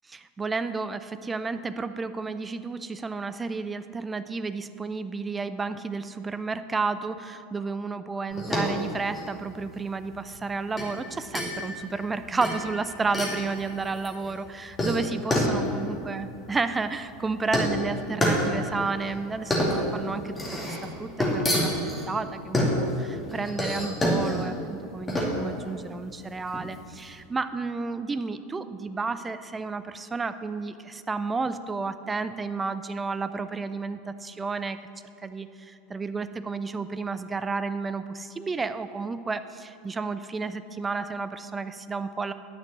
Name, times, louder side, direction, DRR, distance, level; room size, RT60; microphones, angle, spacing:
voice 1, 0.1-34.8 35.2-42.3, right 4 dB, 15° right, 12 dB, 0.5 m, -32 dB
sound 1, 8.3-27.1, equal, 15° left, 2.4 m, -29 dB
10.0 x 6.0 x 7.0 m, 2.7 s
figure-of-eight pair, 80°, 0 cm